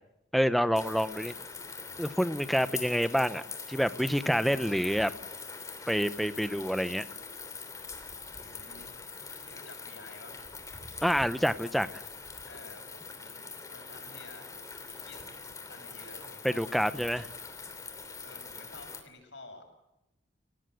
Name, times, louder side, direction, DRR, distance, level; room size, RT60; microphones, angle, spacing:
voice 1, 0.3-1.3 2.0-3.4 3.7-5.1 5.9-7.1 11.0-12.0 16.4-17.2, equal, ahead, 12 dB, 0.8 m, -27 dB
sound 1, 0.7-19.0, left 4 dB, 15° left, 3.1 m, -43 dB
voice 2, 8.3-8.9 9.4-10.5 12.4-15.2 15.7-17.3 18.2-19.6, left 2 dB, 70° left, 5 dB, 6.5 m, -52 dB
29.5 x 18.0 x 7.8 m, 0.92 s
head